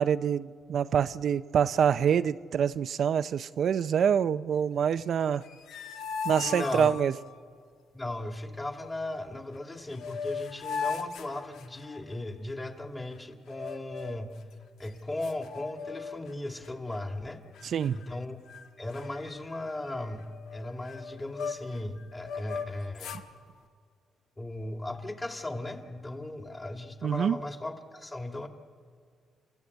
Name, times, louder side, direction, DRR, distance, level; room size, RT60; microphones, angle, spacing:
voice 1, 0.0-5.4 6.2-7.1 17.7-18.0 27.0-27.4, right 8 dB, 60° right, 0.5 m, -26 dB
voice 2, 5.0-5.3 6.4-6.9 7.9-14.4 14.8-17.4 17.9-18.4 18.8-23.2 24.4-28.5, left 2 dB, 20° left, 2.4 m, -37 dB
sound 1, 5.3-7.4 9.5-9.6 9.9-12.1 13.5-14.3 14.8-14.9 15.2-16.3 16.6-17.0 17.5-18.2 18.5-18.6 18.9-21.8 22.2-23.3, left 6 dB, 80° left, 1.3 m, -38 dB
30.0 x 14.0 x 8.5 m
cardioid pair, 90°, 0 cm